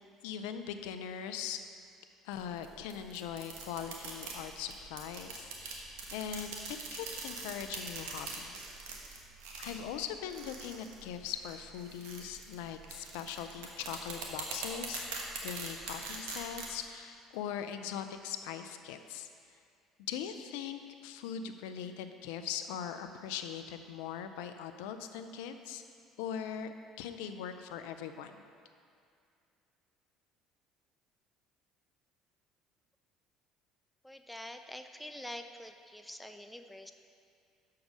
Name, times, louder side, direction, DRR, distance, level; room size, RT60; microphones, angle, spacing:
voice 1, 0.2-1.6 2.2-8.6 9.6-15.1 15.4-19.3 20.1-25.8 26.2-28.4, left 8 dB, 80° left, 9 dB, 0.4 m, -41 dB
sound 1, 2.3-16.8, right 4 dB, 85° right, 1.1 m, -43 dB
voice 2, 34.0-36.9, left 1 dB, 5° left, 6 dB, 0.4 m, -46 dB
6.5 x 4.7 x 6.2 m, 2.4 s
supercardioid pair, 75°, 0 cm